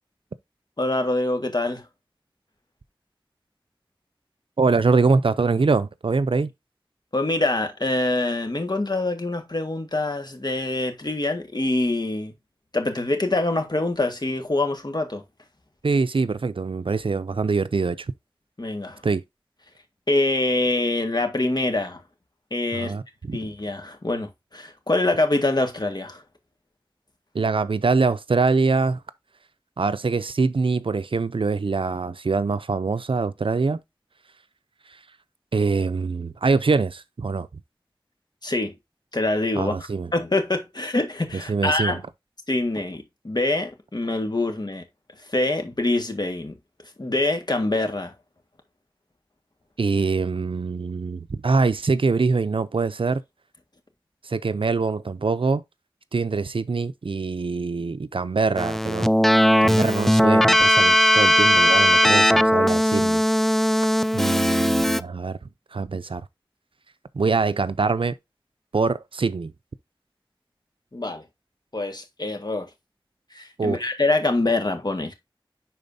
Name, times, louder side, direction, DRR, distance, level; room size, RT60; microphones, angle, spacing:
voice 1, 0.8-1.8 7.1-12.3 12.7-15.2 18.6-19.0 20.1-22.0 22.5-22.9 23.3-26.2 38.4-38.7 39.1-39.8 40.1-42.0 42.5-44.8 45.3-46.5 47.0-48.1 70.9-71.2 71.7-72.7 73.3-75.1, left 2 dB, 50° left, 1.6 m, -25 dB
voice 2, 4.6-6.5 15.8-18.1 19.0-19.2 22.7-23.4 27.3-29.0 29.8-33.8 35.5-37.5 39.6-40.1 41.5-42.0 49.8-53.2 54.2-55.6 56.1-59.1 59.6-63.2 64.1-65.4 65.7-66.2 67.1-68.1 68.7-69.5 73.6-73.8, right 4 dB, 80° right, 0.5 m, -24 dB
Keyboard (musical), 58.6-65.0, equal, 5° left, 0.3 m, -18 dB
10.5 x 4.1 x 2.6 m
wide cardioid pair, 50°, 9 cm